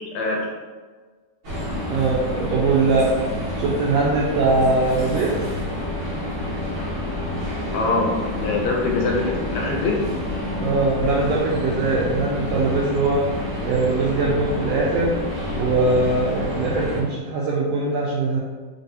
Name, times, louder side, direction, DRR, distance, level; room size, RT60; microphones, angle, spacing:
voice 1, 0.1-0.5 7.7-10.1, left 3 dB, 75° left, -2 dB, 1.9 m, -23 dB
sound 1, 1.4-17.0, left 1 dB, 45° right, 1.1 m, -28 dB
voice 2, 1.9-3.1 3.6-5.4 10.6-13.2 13.6-15.1 15.6-18.4, right 3 dB, 85° right, -3 dB, 1.4 m, -21 dB
4.6 x 4.0 x 2.7 m, 1.4 s
omnidirectional pair, 3.5 m